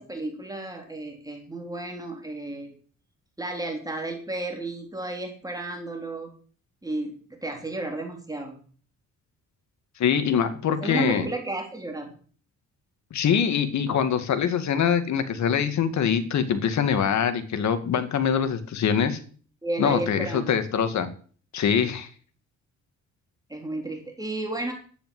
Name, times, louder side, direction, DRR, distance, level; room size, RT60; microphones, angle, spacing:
voice 1, 0.0-2.8 3.4-6.3 6.8-8.6 10.8-12.1 19.6-20.5 23.5-24.7, right 2 dB, 10° right, 2 dB, 3.8 m, -32 dB
voice 2, 10.0-11.3 13.1-19.2 19.8-21.1 21.5-22.1, left 7 dB, 65° left, 10 dB, 2.3 m, -24 dB
11.5 x 10.0 x 7.9 m, 0.43 s
cardioid pair, 90°, 30 cm